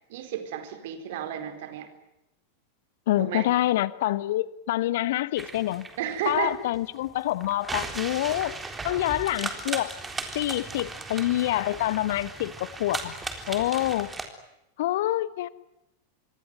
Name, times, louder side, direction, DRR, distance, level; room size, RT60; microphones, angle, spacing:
voice 1, 0.0-1.9 3.2-3.5 6.0-6.6, right 10 dB, 55° right, 4.2 m, -32 dB
voice 2, 3.1-5.9 6.2-8.6 8.8-9.9 10.3-13.1 13.5-14.1 14.8-15.5, left 15 dB, 55° left, 1.2 m, -26 dB
sound 1, 5.4-14.3, right 3 dB, 10° right, 3.8 m, -37 dB
26.5 x 23.0 x 9.3 m
figure-of-eight pair, 90°, 0 cm